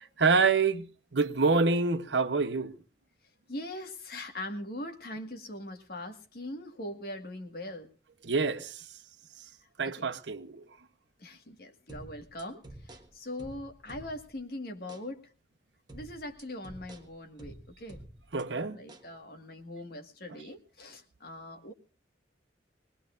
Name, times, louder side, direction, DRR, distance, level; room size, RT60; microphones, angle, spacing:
voice 1, 0.2-2.8 8.2-8.8 9.8-10.6 18.3-18.8, right 4 dB, 85° right, 0.9 m, -27 dB
voice 2, 3.5-7.9 9.8-10.1 11.2-15.3 15.9-18.0 18.5-21.7, left 1 dB, 55° left, 1.8 m, -41 dB
sound 1, 11.9-14.4 14.9-15.1 15.9-18.4 18.9-19.1, right 1 dB, 25° right, 1.5 m, -49 dB
22.0 x 19.5 x 2.5 m
head